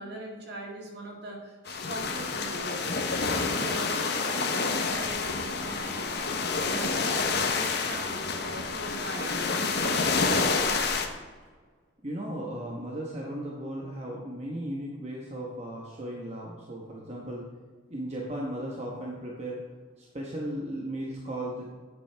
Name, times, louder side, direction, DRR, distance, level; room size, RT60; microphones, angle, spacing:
voice 1, 0.0-3.9 4.3-10.6, right 1 dB, 55° right, 0 dB, 2.0 m, -41 dB
sound 1, 1.7-11.1, left 4 dB, 55° left, 0.9 m, -28 dB
voice 2, 12.0-17.4 17.9-19.6 20.0-21.7, right 1 dB, 30° right, -3 dB, 1.1 m, -36 dB
10.0 x 8.6 x 3.5 m, 1.5 s
head